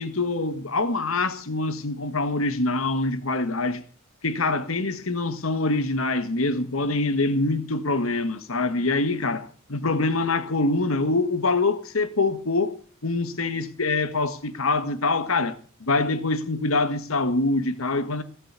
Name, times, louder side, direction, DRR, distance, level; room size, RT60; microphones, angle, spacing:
voice 1, 0.0-3.8 4.2-12.8 13.0-18.2, left 3 dB, 85° left, 1.5 m, -25 dB
17.0 x 7.7 x 8.1 m
head